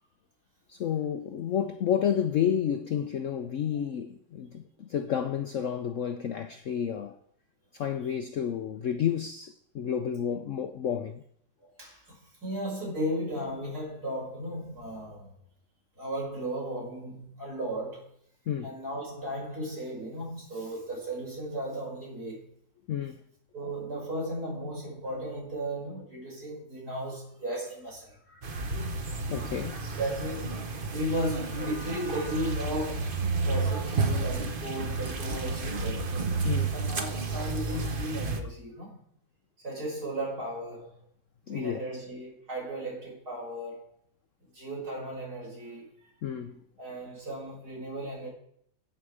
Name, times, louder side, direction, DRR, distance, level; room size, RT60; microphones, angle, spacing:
voice 1, 0.7-7.2 7.7-11.2 18.5-18.7 22.9-23.2 29.3-29.8 36.4-36.7 41.5-41.8 46.2-46.6, left 9 dB, 65° left, 0.8 m, -30 dB
voice 2, 11.6-15.3 16.0-18.1 18.6-22.4 23.5-29.0 30.0-30.7 30.9-36.2 36.7-39.0 39.6-41.0 41.5-43.9 44.5-46.1 46.8-48.3, right 1 dB, 60° right, 6.5 m, -35 dB
sound 1, 28.4-38.4, right 3 dB, 35° right, 1.0 m, -31 dB
16.5 x 7.0 x 4.8 m
omnidirectional pair, 1.9 m